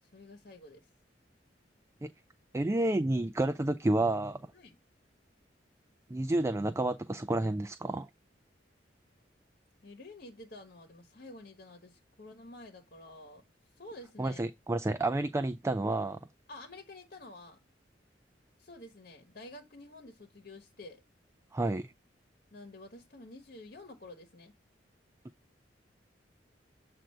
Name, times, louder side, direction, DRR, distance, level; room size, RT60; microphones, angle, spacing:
voice 1, 0.0-0.9 4.5-4.8 9.8-13.4 13.8-14.4 16.5-17.6 18.6-21.0 22.5-24.5, left 2 dB, 55° left, 1.2 m, -50 dB
voice 2, 2.5-4.4 6.1-8.1 14.2-16.2 21.5-21.9, right 2 dB, 15° right, 0.4 m, -30 dB
7.5 x 2.6 x 5.5 m
head